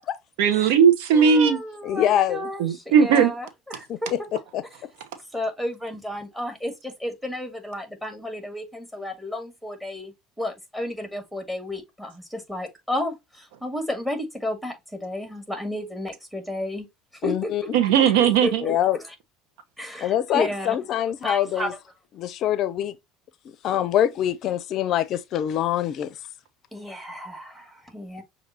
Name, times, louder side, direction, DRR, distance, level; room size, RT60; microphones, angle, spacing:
voice 1, 0.4-1.6 2.6-3.3 17.7-18.6, right 7 dB, 75° right, 0.9 m, -18 dB
voice 2, 1.1-4.1 5.3-16.9 17.2-17.7 18.4-18.7 19.8-20.8 21.2-21.7 26.7-28.2, left 1 dB, 5° right, 2.1 m, -32 dB
voice 3, 1.8-2.5 3.9-4.9 17.2-17.6 18.6-19.0 20.0-21.7 22.2-23.0 23.4-26.2, left 11 dB, 55° left, 0.5 m, -25 dB
6.5 x 2.7 x 2.7 m
hypercardioid pair, 80°, 0 cm